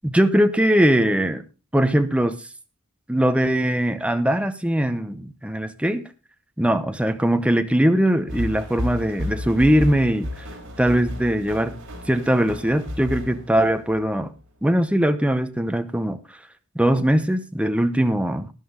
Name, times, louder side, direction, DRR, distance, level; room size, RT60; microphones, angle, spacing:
voice 1, 0.0-1.4 1.7-2.4 3.1-6.1 6.6-10.5 10.8-11.7 12.1-14.3 14.6-16.2 16.7-18.5, right 1 dB, 5° right, 0.7 m, -21 dB
sound 1, 8.3-14.2, left 1 dB, 60° right, 4.1 m, -32 dB
13.0 x 11.0 x 3.7 m
head